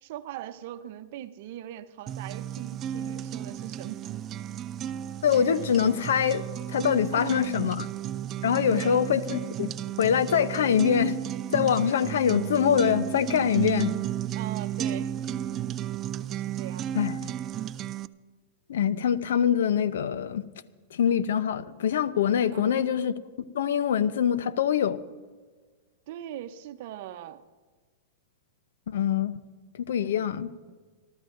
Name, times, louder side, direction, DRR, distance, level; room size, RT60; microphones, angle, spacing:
voice 1, 0.0-4.1 7.1-7.5 8.7-9.0 14.3-15.1 16.4-17.0 22.5-22.8 26.1-27.4 30.7-30.8, right 12 dB, 55° right, 0.8 m, -40 dB
sound 1, 2.1-18.1, right 10 dB, 25° right, 0.4 m, -33 dB
voice 2, 5.2-6.4 6.7-7.9 8.4-9.7 10.0-11.2 11.5-13.9 16.9-17.3 18.7-20.4 20.9-23.1 23.5-25.0 28.9-29.3 29.8-30.5, left 8 dB, 80° left, 0.7 m, -24 dB
27.0 x 13.0 x 2.6 m
supercardioid pair, 145°, 0 cm